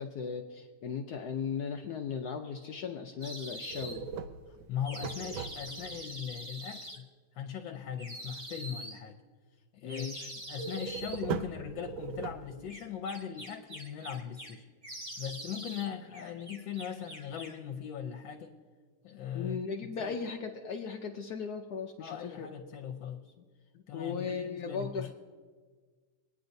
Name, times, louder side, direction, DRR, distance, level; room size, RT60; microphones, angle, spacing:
voice 1, 0.0-4.1 9.8-10.3 15.1-15.2 15.8-15.9 19.3-22.5 22.9-23.0 23.7-25.1, left 6 dB, 85° left, 4 dB, 0.8 m, -37 dB
sound 1, 3.2-4.0 4.8-7.0 8.0-9.0 9.9-11.2 12.7-14.5 14.8-15.9 16.1-17.6, right 1 dB, 30° right, 0.9 m, -44 dB
sound 2, 3.7-6.0 10.5-12.8, right 6 dB, 70° right, 1.2 m, -39 dB
voice 2, 4.5-7.1 7.3-9.2 9.7-14.6 15.2-18.5 19.0-19.6 20.0-20.1 22.0-23.3 23.9-25.1, left 8 dB, 70° left, 4 dB, 1.3 m, -39 dB
24.5 x 9.6 x 2.6 m, 1.5 s
omnidirectional pair, 2.4 m